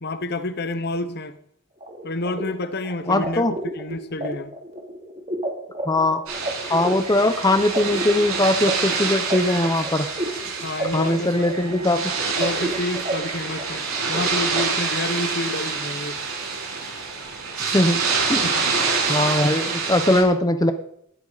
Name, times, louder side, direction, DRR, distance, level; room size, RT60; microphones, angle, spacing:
voice 1, 0.0-1.4 2.0-4.6 10.5-11.5 12.3-16.2 18.4-18.8, left 2 dB, 45° left, 1.0 m, -29 dB
sound 1, 1.8-14.6, right 1 dB, 30° right, 3.0 m, -32 dB
voice 2, 3.1-3.5 5.9-6.2 6.7-10.1 10.9-12.1 17.6-18.0 18.3-18.4 19.1-20.7, left 1 dB, 15° left, 0.8 m, -20 dB
sound 2, 6.3-20.2, right 4 dB, 70° right, 7.4 m, -27 dB
18.0 x 13.5 x 4.1 m
head